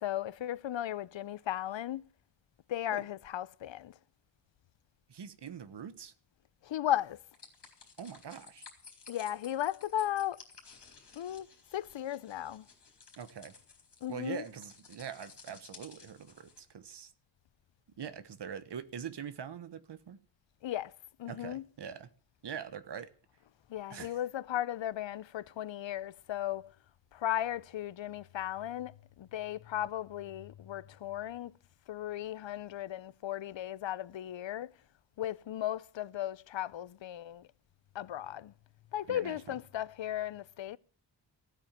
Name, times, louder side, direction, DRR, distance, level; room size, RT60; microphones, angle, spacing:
voice 1, 0.0-2.1 2.7-3.9 6.6-7.2 9.1-10.4 11.2-11.5 11.7-12.7 14.0-14.4 20.6-20.9 21.2-21.6 23.7-26.7 27.1-31.5 31.9-34.7 35.2-37.5 37.9-38.5 38.9-40.8, left 12 dB, 90° left, 0.7 m, -36 dB
voice 2, 5.1-6.1 8.0-8.6 13.2-13.5 14.1-17.1 18.0-20.2 21.3-22.1 22.4-23.1 23.9-24.2 39.1-39.4, right 8 dB, 70° right, 1.2 m, -43 dB
sound 1, 7.3-16.6, left 5 dB, 65° left, 4.1 m, -56 dB
15.5 x 9.1 x 7.3 m
wide cardioid pair, 170°, 43 cm